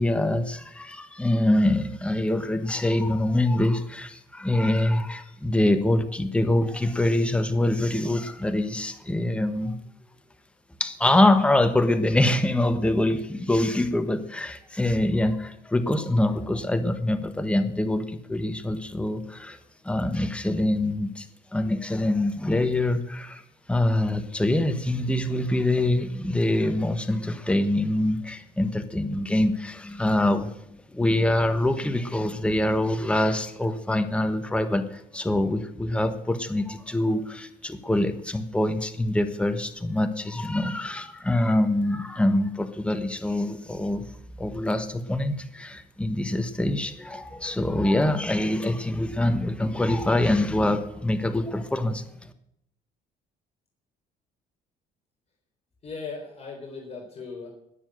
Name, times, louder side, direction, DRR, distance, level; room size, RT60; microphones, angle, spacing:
voice 1, 0.0-9.8 10.8-21.3 21.5-23.4 23.7-30.5 30.9-44.1 44.4-52.0, left 1 dB, 5° left, 8 dB, 1.2 m, -24 dB
voice 2, 55.8-57.5, left 4 dB, 40° left, 0 dB, 3.9 m, -38 dB
20.0 x 7.2 x 8.0 m, 0.77 s
cardioid pair, 110°, 17 cm